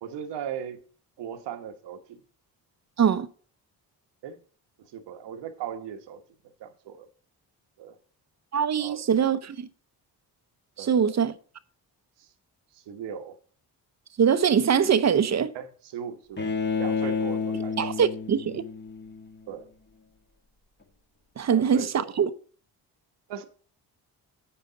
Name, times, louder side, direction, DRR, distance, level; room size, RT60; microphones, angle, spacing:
voice 1, 0.0-0.8 1.2-2.2 4.2-4.4 4.9-6.2 6.6-7.1 7.8-8.0 8.8-9.0 10.8-11.2 12.2-12.3 12.7-13.4 15.5-16.5 16.8-17.8 19.5-19.7 21.5-22.1 23.3-23.4, right 8 dB, 80° right, 1.2 m, -38 dB
voice 2, 8.5-9.7 10.8-11.3 14.2-15.5 17.8-18.6 21.4-22.3, right 7 dB, 40° right, 0.7 m, -23 dB
Bowed string instrument, 16.4-19.4, left 5 dB, 25° left, 1.4 m, -30 dB
10.0 x 7.2 x 3.9 m
cardioid pair, 75°, 41 cm